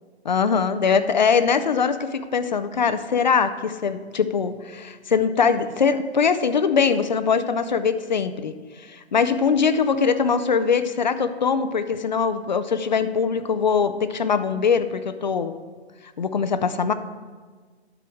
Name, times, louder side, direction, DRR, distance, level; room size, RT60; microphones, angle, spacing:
voice 1, 0.2-8.5 8.9-15.5 16.2-16.9, left 6 dB, 45° left, 11 dB, 0.4 m, -22 dB
10.5 x 4.5 x 6.2 m, 1.5 s
hypercardioid pair, 170°, 32 cm